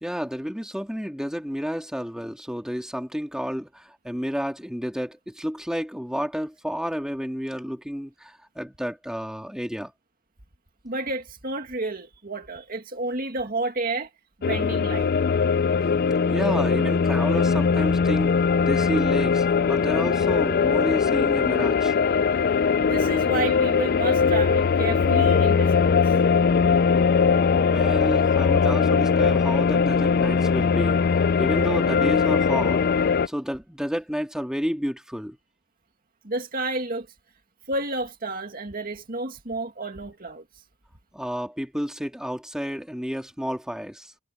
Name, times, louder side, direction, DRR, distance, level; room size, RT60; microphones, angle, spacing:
voice 1, 0.0-9.9 16.3-21.9 27.6-35.4 41.1-44.1, equal, 5° right, 2.6 m, -31 dB
voice 2, 10.8-14.1 14.4-15.1 22.8-26.1 36.2-37.1 37.7-40.4, right 2 dB, 40° right, 2.2 m, -30 dB
sound 1, 14.4-33.3, left 5 dB, 45° left, 0.4 m, -21 dB
head